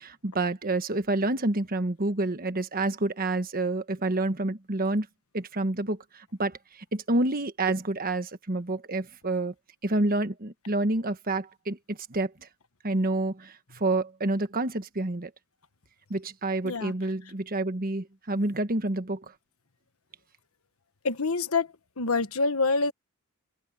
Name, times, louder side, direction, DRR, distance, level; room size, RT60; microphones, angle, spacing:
voice 1, 0.0-5.1 5.3-9.5 9.8-12.3 12.8-15.3 16.1-19.2, right 2 dB, 40° right, 1.3 m, -28 dB
voice 2, 21.0-21.7 22.0-22.9, left 3 dB, 70° left, 1.4 m, -26 dB
open air
head